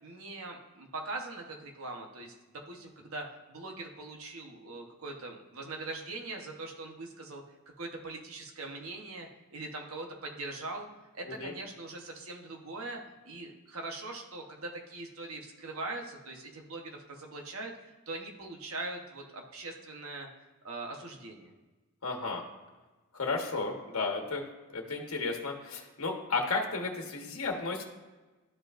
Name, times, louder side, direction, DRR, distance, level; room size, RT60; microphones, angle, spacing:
voice 1, 0.0-7.4 7.8-10.9 11.1-13.0 13.3-20.3 20.6-21.5, right 2 dB, 85° right, 2 dB, 1.1 m, -41 dB
voice 2, 22.0-22.4 23.1-24.4 24.7-27.8, left 3 dB, 75° left, 1 dB, 1.2 m, -33 dB
12.5 x 5.0 x 2.6 m, 1.2 s
head